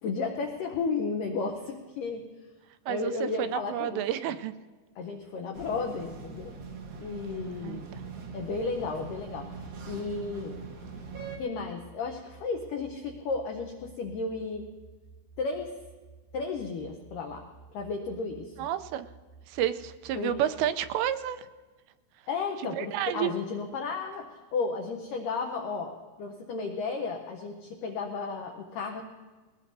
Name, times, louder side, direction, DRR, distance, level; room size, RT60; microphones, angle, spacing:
voice 1, 0.0-2.3 2.9-4.0 5.0-6.5 7.0-7.9 8.3-9.5 9.9-10.6 11.4-14.7 15.4-15.7 16.3-17.5 17.7-18.5 20.2-20.3 22.3-29.0, left 4 dB, 90° left, 3 dB, 1.9 m, -33 dB
voice 2, 3.4-4.5 7.1-7.2 7.6-8.0 18.6-19.1 19.5-21.5 22.6-23.3, right 11 dB, 85° right, 11 dB, 2.8 m, -30 dB
sound 1, 5.5-11.4, right 5 dB, 65° right, 1.6 m, -42 dB
sound 2, 8.0-21.0, right 5 dB, 45° right, 7.3 m, -54 dB
21.0 x 18.5 x 2.7 m, 1.3 s
omnidirectional pair, 5.0 m